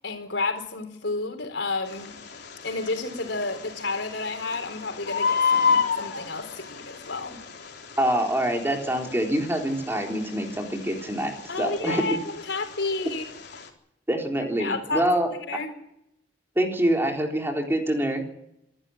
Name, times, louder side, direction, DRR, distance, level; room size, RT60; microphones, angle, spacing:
voice 1, 0.0-2.2 2.6-7.4 11.5-13.2 14.6-15.0 15.4-15.7, left 3 dB, 85° left, 6 dB, 4.3 m, -31 dB
Bird, 1.8-13.7, left 6 dB, 65° left, 3.9 m, -31 dB
voice 2, 8.0-11.3 11.6-12.0 14.1-15.3 16.6-18.3, right 1 dB, 15° right, 2 dB, 3.9 m, -25 dB
26.5 x 12.5 x 9.7 m, 0.81 s
head